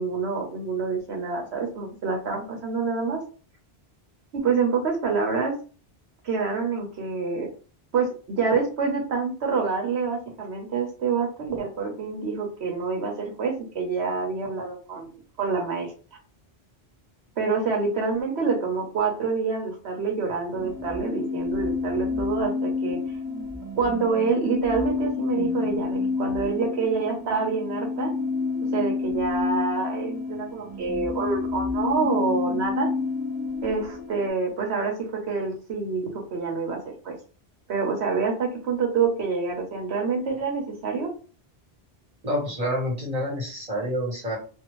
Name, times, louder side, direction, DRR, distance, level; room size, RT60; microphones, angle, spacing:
voice 1, 0.0-3.2 4.3-5.5 6.2-7.5 7.9-15.1 15.4-15.9 17.4-23.0 23.8-28.1 28.7-32.9 33.6-36.8 37.0-37.1 37.7-41.1, right 5 dB, 90° right, 2 dB, 1.2 m, -27 dB
sound 1, 20.5-34.3, left 4 dB, 10° right, 0.7 m, -29 dB
voice 2, 42.2-44.4, equal, 40° right, -3 dB, 1.4 m, -28 dB
2.7 x 2.6 x 3.0 m, 0.37 s
omnidirectional pair, 1.1 m